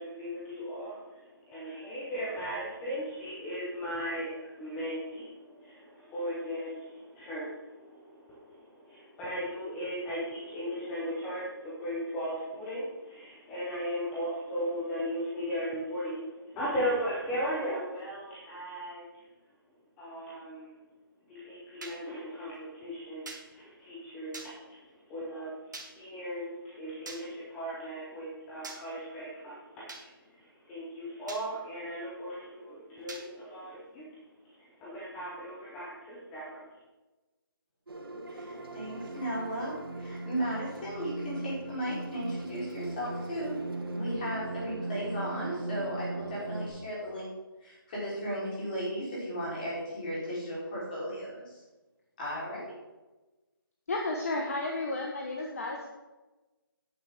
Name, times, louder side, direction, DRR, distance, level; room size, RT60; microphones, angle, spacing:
voice 1, 0.0-19.0 20.0-20.7 21.3-24.7 25.1-25.5 25.9-29.8 30.4-34.1 34.6-36.6, equal, 5° left, -7 dB, 0.8 m, -37 dB
sound 1, 21.8-22.0 23.3-23.4 24.3-24.5 25.7-25.9 27.1-27.2 28.6-28.8 29.9-30.0 31.3-31.4 33.1-33.2, right 3 dB, 50° right, 1.7 m, -42 dB
sound 2, 37.9-46.7, right 2 dB, 70° right, 2.3 m, -38 dB
voice 2, 38.3-43.5 43.9-47.3 47.6-51.6 52.2-52.7, equal, 20° left, -7 dB, 3.8 m, -35 dB
voice 3, 53.9-55.9, left 2 dB, 40° left, 0 dB, 1.2 m, -32 dB
10.5 x 9.6 x 3.6 m, 1.1 s
hypercardioid pair, 175°, 12 cm